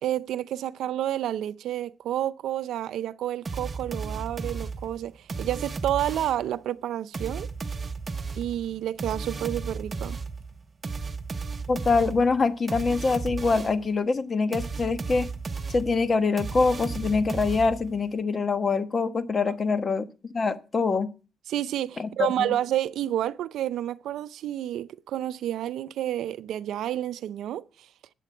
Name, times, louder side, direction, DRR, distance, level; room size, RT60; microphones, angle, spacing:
voice 1, 0.0-5.1 5.4-7.5 8.4-10.2 19.5-19.6 21.5-27.6, right 12 dB, 75° right, 0.5 m, -30 dB
sound 1, 3.5-6.5 7.1-13.9 14.5-18.0, right 4 dB, 35° right, 1.0 m, -34 dB
voice 2, 11.7-15.3 15.7-20.1 20.3-21.1 22.0-22.5, left 4 dB, 35° left, 1.1 m, -24 dB
11.5 x 8.5 x 4.5 m
cardioid pair, 90°, 0 cm